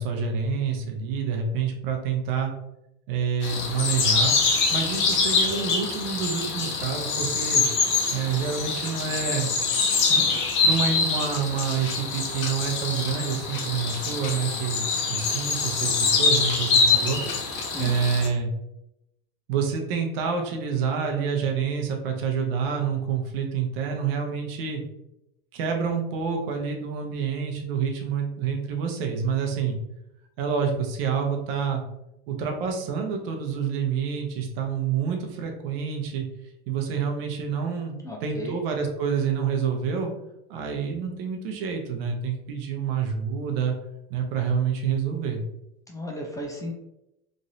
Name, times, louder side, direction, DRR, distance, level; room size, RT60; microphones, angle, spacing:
voice 1, 0.0-2.5 3.1-4.3 4.7-7.7 8.1-9.5 10.1-10.3 10.6-14.8 15.1-17.2 17.8-18.5 19.5-24.8 25.5-29.8 30.4-31.8 32.3-36.3 36.7-40.1 40.5-43.7 44.1-45.4, right 6 dB, 70° right, 3 dB, 0.8 m, -28 dB
sound 1, 3.4-18.3, left 4 dB, 40° left, 0.7 m, -25 dB
voice 2, 38.0-38.5 45.9-46.7, left 1 dB, 10° left, 0 dB, 0.4 m, -34 dB
3.1 x 2.6 x 2.7 m, 0.86 s
supercardioid pair, 125°, 30 cm